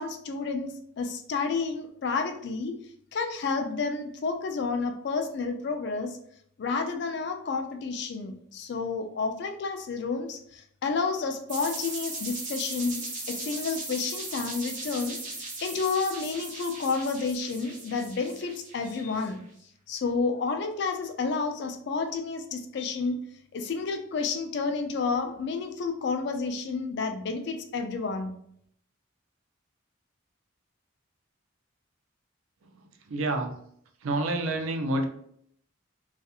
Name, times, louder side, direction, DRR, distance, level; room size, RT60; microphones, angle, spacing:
voice 1, 0.0-2.8 3.1-6.2 6.6-19.4 19.9-23.2 23.5-28.3, left 4 dB, 55° left, 6 dB, 0.3 m, -30 dB
sound 1, 11.5-19.3, right 2 dB, 40° right, 0.8 m, -38 dB
voice 2, 33.1-33.5 34.0-35.0, right 2 dB, 85° right, 5 dB, 0.4 m, -28 dB
2.8 x 2.4 x 2.3 m, 0.67 s
head